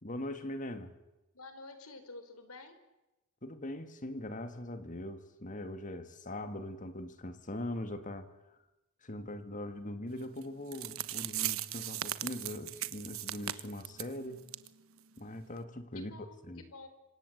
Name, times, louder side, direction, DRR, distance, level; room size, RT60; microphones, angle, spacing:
voice 1, 0.0-1.0 3.4-8.3 9.0-14.5 15.2-16.6, left 1 dB, 35° left, 2.0 m, -41 dB
voice 2, 1.3-2.8 15.9-16.9, left 3 dB, 80° left, 4.4 m, -50 dB
sound 1, 10.4-10.5 10.7-14.1 14.5-14.7 15.0-15.1 15.6-15.7, right 13 dB, 70° right, 1.2 m, -37 dB
27.0 x 26.0 x 8.1 m
head